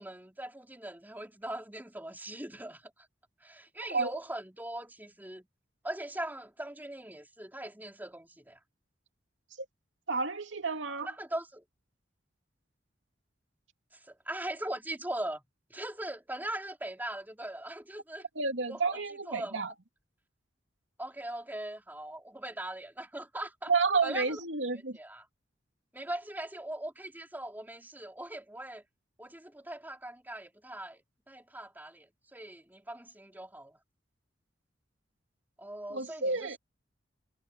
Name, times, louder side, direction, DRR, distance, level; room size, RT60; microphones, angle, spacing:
voice 1, 0.0-2.9 3.4-5.5 5.8-8.6 11.0-11.6 14.0-15.4 15.7-18.3 18.7-19.0 19.3-19.6 21.0-23.7 24.0-24.4 24.9-25.3 25.9-28.8 29.2-31.0 31.3-33.8 35.6-36.6, right 1 dB, 10° right, 3.7 m, -40 dB
voice 2, 10.1-11.1 18.4-19.7 23.7-25.0 35.9-36.6, right 4 dB, 85° right, 2.5 m, -30 dB
head